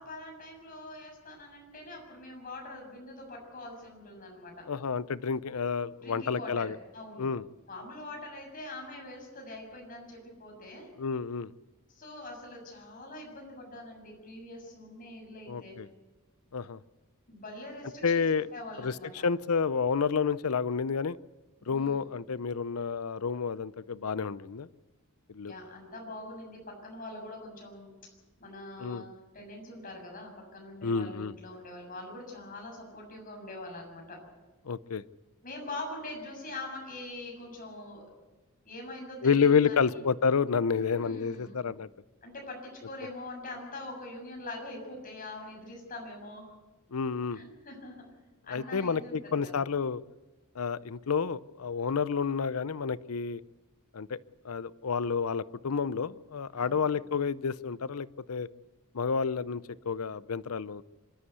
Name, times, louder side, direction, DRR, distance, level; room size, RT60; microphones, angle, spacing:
voice 1, 0.0-4.7 6.0-7.3 7.7-10.9 11.9-15.8 17.3-18.2 18.5-19.2 21.6-22.1 25.4-28.1 28.4-34.2 35.4-38.1 38.6-40.0 40.7-41.7 42.2-46.5 47.3-48.1 48.4-49.6 56.6-56.9, left 2 dB, 40° left, 1 dB, 7.0 m, -43 dB
voice 2, 4.7-6.8 7.2-7.4 11.0-11.5 15.5-15.9 16.5-16.8 18.0-18.5 18.8-18.9 19.2-21.2 21.7-24.7 25.3-25.5 28.8-29.0 30.8-31.3 34.7-35.0 39.2-41.9 46.9-47.4 48.5-50.0 50.6-53.4 53.9-54.2 54.4-58.5 58.9-60.8, left 5 dB, 85° left, 18 dB, 0.6 m, -29 dB
26.0 x 13.0 x 8.2 m, 1.2 s
head